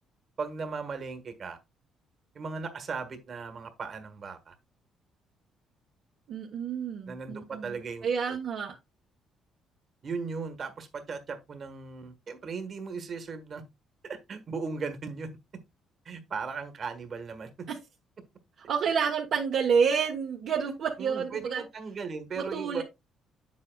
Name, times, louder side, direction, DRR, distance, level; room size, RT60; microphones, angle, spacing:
voice 1, 0.4-1.6 2.3-4.5 7.1-8.4 10.0-13.6 14.0-15.3 16.0-17.7 21.0-22.8, right 5 dB, 40° right, 1.4 m, -37 dB
voice 2, 6.3-7.7 8.0-8.7 17.7-17.8 18.7-21.6 22.4-22.8, right 6 dB, 60° right, 1.1 m, -29 dB
8.3 x 7.5 x 2.3 m
cardioid pair, 135°, 0 cm